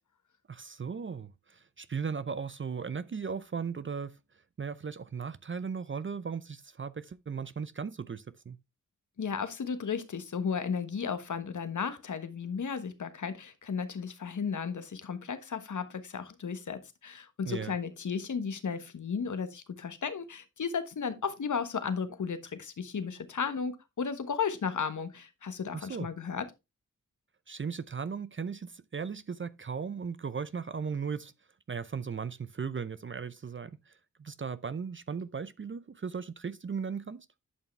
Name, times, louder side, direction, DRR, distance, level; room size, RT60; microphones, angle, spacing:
voice 1, 0.5-4.2 4.6-8.6 17.5-17.8 25.7-26.1 27.5-31.3 31.7-37.3, right 6 dB, 40° right, 0.6 m, -37 dB
voice 2, 9.2-26.5, left 6 dB, 70° left, 1.4 m, -34 dB
11.0 x 5.7 x 3.3 m
cardioid pair, 45°, 31 cm